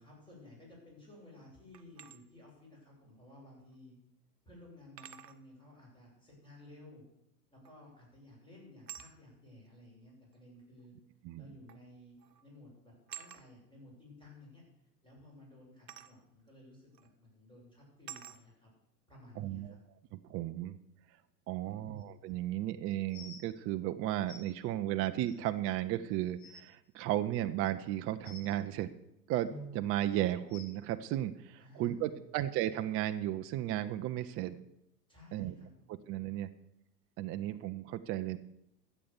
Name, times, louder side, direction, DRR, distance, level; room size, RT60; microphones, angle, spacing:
voice 1, 0.0-4.0 4.4-7.0 7.5-10.9 11.4-12.1 12.4-14.6 15.0-18.7 19.1-19.8 21.6-22.1 31.6-32.4 35.1-36.1, left 1 dB, 10° left, -2 dB, 6.8 m, -56 dB
sound 1, 1.7-2.2 3.7-3.8 5.0-5.4 7.6-8.0 8.9-9.1 10.3-10.4 11.7-11.9 12.2-12.4 13.1-13.4 15.9-16.1 16.9-17.1 18.1-18.4, right 9 dB, 90° right, 1.0 m, -48 dB
voice 2, 19.4-19.7 20.1-20.7 21.5-28.9 29.3-34.6 35.3-35.5 36.1-36.5 37.2-38.4, right 13 dB, 30° right, 9 dB, 0.6 m, -34 dB
sound 2, 22.0-22.1 23.1-23.4 24.3-24.4 25.3-25.4 25.9-26.0 26.3-26.6 28.2-28.5 29.5-29.7 30.5-30.7 31.8-31.9 32.7-32.8 33.4-33.5, left 1 dB, 50° left, 3.2 m, -49 dB
13.5 x 8.1 x 7.1 m, 0.82 s
hypercardioid pair, 100°, 48 cm